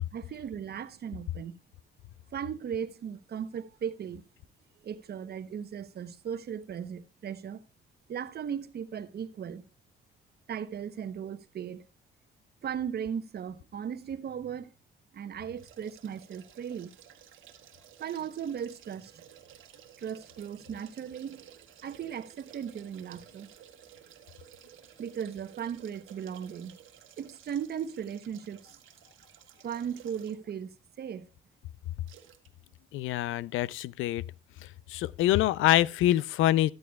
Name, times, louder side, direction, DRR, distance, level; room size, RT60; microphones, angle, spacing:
voice 1, 0.1-1.6 2.3-4.2 4.8-7.6 8.1-9.6 10.5-11.9 12.6-14.7 15.1-16.9 18.0-19.2 20.0-21.5 21.8-23.5 25.0-26.8 27.2-28.8 29.6-31.3, right 8 dB, 55° right, 0.9 m, -37 dB
sound 1, 15.6-30.5 31.0-31.1 32.1-32.5 32.8-32.9, right 10 dB, 85° right, 1.4 m, -55 dB
voice 2, 32.9-34.2 34.9-36.7, left 14 dB, 85° left, 0.4 m, -25 dB
13.5 x 12.0 x 2.3 m
cardioid pair, 90°, 20 cm